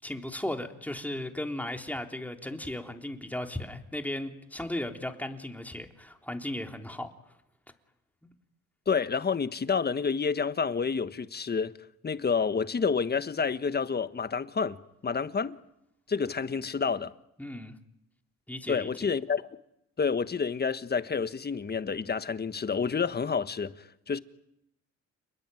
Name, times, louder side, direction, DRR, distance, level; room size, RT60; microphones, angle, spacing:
voice 1, 0.0-7.1 8.2-8.3 17.4-17.7 18.5-18.9, left 1 dB, 5° left, 3.6 m, -36 dB
voice 2, 8.9-11.7 12.0-14.8 15.0-15.6 16.1-17.1 18.7-19.5 20.0-24.2, left 5 dB, 35° left, 1.5 m, -29 dB
29.5 x 21.0 x 9.3 m
cardioid pair, 90°, 30 cm